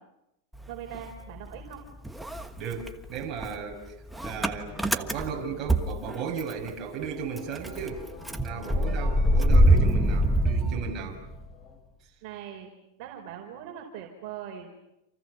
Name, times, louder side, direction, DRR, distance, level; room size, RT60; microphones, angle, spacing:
Motor vehicle (road) / Engine starting, 0.5-1.8 2.0-6.7 7.0-7.1 7.4-11.5, right 1 dB, 5° right, 1.4 m, -25 dB
voice 1, 0.7-1.8 12.2-12.7 13.0-14.7, right 10 dB, 50° right, 0 dB, 4.8 m, -41 dB
voice 2, 2.6-3.9 4.2-8.1 8.4-11.2, right 6 dB, 30° right, 0 dB, 7.0 m, -35 dB
sound 1, 4.1-11.8, left 3 dB, 25° left, 6.0 m, -51 dB
29.5 x 28.0 x 7.0 m, 0.85 s
supercardioid pair, 145°, 0 cm